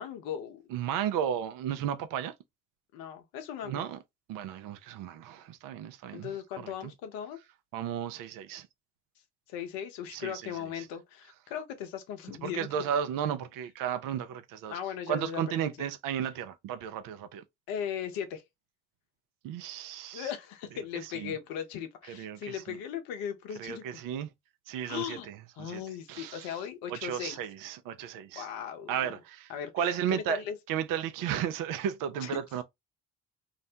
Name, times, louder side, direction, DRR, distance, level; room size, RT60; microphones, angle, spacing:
voice 1, 0.0-0.6 2.9-3.8 6.1-7.4 9.5-12.7 14.7-15.9 17.7-18.4 20.1-24.0 24.9-25.3 25.6-27.4 28.4-29.1 29.5-30.6 32.2-32.4, left 9 dB, 75° left, 0.7 m, -38 dB
voice 2, 0.7-2.3 3.6-4.0 4.3-6.9 7.7-8.7 10.1-10.5 10.8-10.9 12.4-14.8 15.1-17.4 19.4-20.3 20.9-21.4 22.1-22.8 23.6-24.3 24.7-25.8 26.1-26.6 26.9-28.5 28.9-30.4 30.7-32.6, right 9 dB, 65° right, 0.5 m, -34 dB
2.5 x 2.1 x 2.7 m
hypercardioid pair, 55°, 36 cm